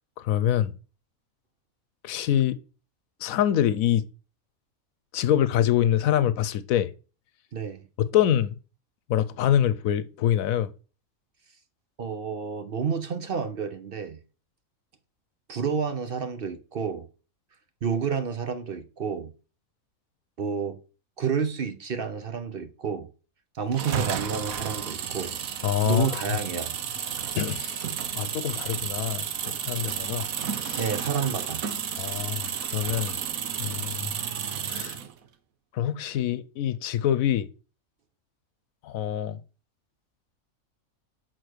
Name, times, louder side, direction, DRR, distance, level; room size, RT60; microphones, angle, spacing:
voice 1, 0.2-0.7 2.0-2.6 3.2-4.0 5.1-6.9 8.0-8.6 9.1-10.7 25.6-26.2 27.4-27.8 28.2-30.3 30.6-30.8 32.0-33.2 33.6-34.1 34.7-35.0 35.7-37.5 38.8-39.4, left 11 dB, 80° left, 1.1 m, -25 dB
voice 2, 12.0-14.2 15.5-17.1 17.8-19.3 20.4-20.8 21.2-23.1 23.6-25.4 25.8-26.8 30.8-31.6, right 6 dB, 50° right, 0.8 m, -30 dB
sound 1, 23.7-35.1, right 8 dB, 90° right, 1.3 m, -32 dB
6.6 x 4.3 x 6.2 m
omnidirectional pair, 1.4 m